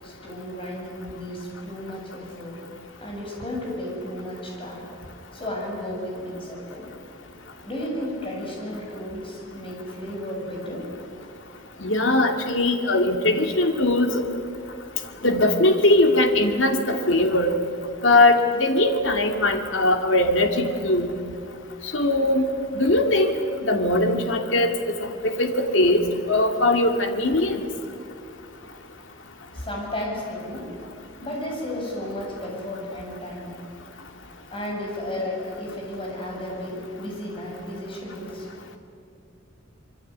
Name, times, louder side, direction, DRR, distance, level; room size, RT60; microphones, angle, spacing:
voice 1, 0.0-2.6 3.0-4.9 5.3-6.9 7.6-10.9 29.5-30.7 31.2-33.5 34.5-38.5, left 1 dB, 30° left, -1 dB, 7.9 m, -33 dB
voice 2, 11.8-14.2 15.2-17.5 18.0-21.1 21.8-22.5 22.7-23.3 23.6-24.7 25.0-27.7, left 2 dB, 70° left, 5 dB, 2.7 m, -20 dB
26.0 x 23.5 x 9.6 m, 2.4 s
head